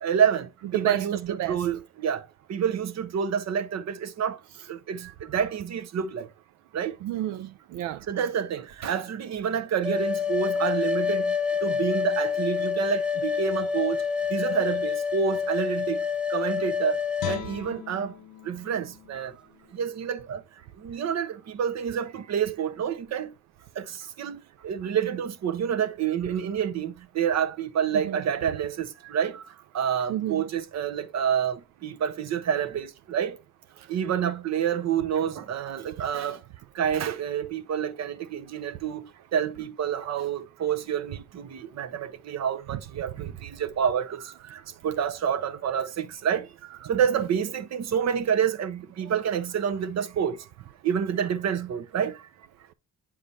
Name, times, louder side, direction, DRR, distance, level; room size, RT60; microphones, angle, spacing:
voice 1, 0.0-2.2 2.5-4.4 4.7-6.3 6.7-6.9 8.1-11.3 11.6-14.0 14.3-16.0 16.3-17.0 17.3-18.1 18.4-19.3 19.7-20.4 20.8-23.3 23.8-24.4 24.6-29.4 29.7-33.4 33.9-36.4 36.7-50.4 50.8-52.2, right 8 dB, 60° right, 0.9 m, -28 dB
voice 2, 0.7-1.1 1.4-1.7 7.0-8.0 28.0-28.2 30.1-30.4, right 14 dB, 85° right, 0.5 m, -29 dB
sound 1, 9.8-17.4, left 6 dB, 5° right, 0.6 m, -27 dB
Guitar, 17.2-20.3 20.8-20.9, left 12 dB, 80° left, 0.8 m, -41 dB
8.5 x 4.9 x 2.7 m
cardioid pair, 90°, 30 cm